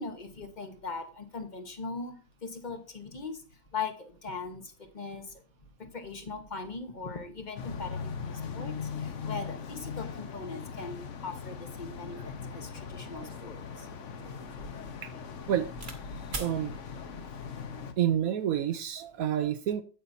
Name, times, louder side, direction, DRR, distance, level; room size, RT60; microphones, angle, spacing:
voice 1, 0.0-3.4 3.7-5.4 5.8-13.9 17.1-17.2, left 4 dB, 30° left, 1.0 m, -40 dB
sound 1, 7.6-17.9, left 6 dB, 55° left, 1.1 m, -40 dB
sound 2, 13.2-16.0 16.3-16.6 17.4-17.8, right 3 dB, 30° right, 1.3 m, -43 dB
voice 2, 16.3-16.8 18.0-19.8, right 10 dB, 65° right, 1.0 m, -29 dB
9.1 x 8.5 x 2.7 m
omnidirectional pair, 1.8 m